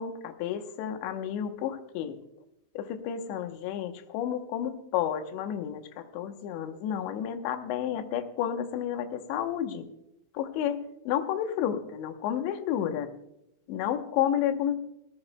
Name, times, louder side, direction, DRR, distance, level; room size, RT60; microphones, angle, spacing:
voice 1, 0.0-2.2 2.8-9.9 10.3-13.1 13.7-14.8, left 9 dB, 90° left, 7 dB, 3.3 m, -31 dB
18.5 x 18.0 x 2.2 m, 0.84 s
omnidirectional pair, 5.0 m